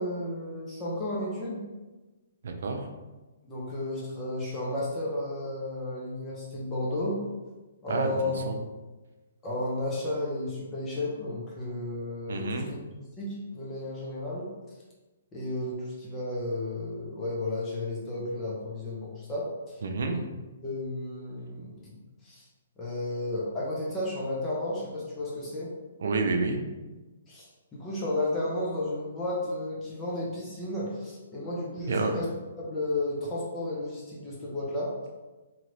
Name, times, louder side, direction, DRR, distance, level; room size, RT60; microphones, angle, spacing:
voice 1, 0.0-1.6 3.5-7.2 7.8-8.3 9.4-14.5 15.3-19.8 20.1-20.2 20.6-21.9 22.2-22.5 22.8-25.7 27.3-32.3 32.6-34.9, left 1 dB, 20° left, -6 dB, 0.8 m, -33 dB
voice 2, 2.4-2.9 7.9-8.6 12.3-12.7 19.8-20.1 26.0-26.6 31.9-32.1, right 3 dB, 65° right, 4 dB, 0.5 m, -29 dB
2.9 x 2.5 x 3.1 m, 1.2 s
hypercardioid pair, 135°, 0 cm